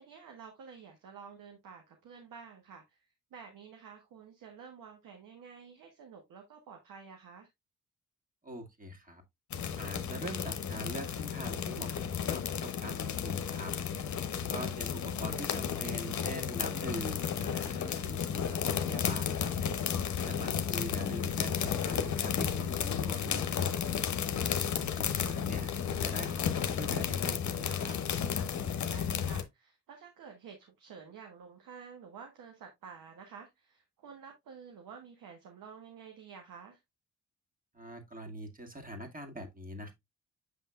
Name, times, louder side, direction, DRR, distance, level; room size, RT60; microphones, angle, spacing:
voice 1, 0.0-3.0 3.3-7.5 14.5-14.7 20.4-20.7 24.7-25.1 28.9-36.8, right 6 dB, 75° right, 1.4 m, -51 dB
voice 2, 8.4-9.2 9.8-13.7 14.3-19.5 20.1-23.7 24.3-28.0 37.7-39.9, equal, 25° right, 2.0 m, -43 dB
sound 1, 9.5-29.4, left 8 dB, 60° left, 0.9 m, -33 dB
7.5 x 5.6 x 2.4 m
hypercardioid pair, 45°, 33 cm